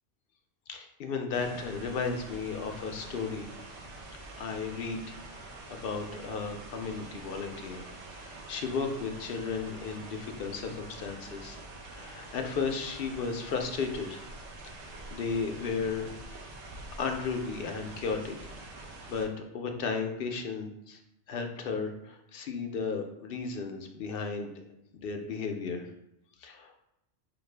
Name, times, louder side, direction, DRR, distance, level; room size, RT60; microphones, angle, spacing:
voice 1, 0.7-3.5 4.4-7.9 8.2-11.6 11.9-14.2 15.1-16.2 17.0-18.4 18.7-19.3 19.5-21.0 21.3-24.5 24.9-25.9 26.4-26.8, left 5 dB, 60° left, 4 dB, 0.6 m, -34 dB
sound 1, 1.3-19.3, right 2 dB, 70° right, 0.9 m, -46 dB
5.0 x 2.3 x 3.2 m, 0.83 s
omnidirectional pair, 1.3 m